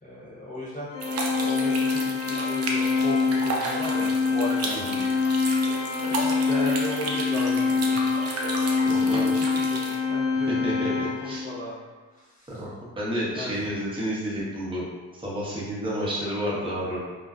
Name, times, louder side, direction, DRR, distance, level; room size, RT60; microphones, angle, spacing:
voice 1, 0.0-0.9 1.2-4.9 6.0-8.1 8.8-9.8 10.1-10.5 11.2-11.7 12.1-12.5 13.4-13.7, left 1 dB, 25° left, -7 dB, 1.0 m, -36 dB
Organ, 0.9-11.6, left 4 dB, 80° left, 0.6 m, -25 dB
sound 1, 1.0-10.0, right 2 dB, 55° right, 0.5 m, -33 dB
voice 2, 8.8-9.3 10.5-11.4 12.5-12.7 13.0-14.9 15.1-17.0, equal, 15° right, -7 dB, 0.8 m, -30 dB
2.5 x 2.1 x 2.3 m, 1.3 s
cardioid pair, 90°, 30 cm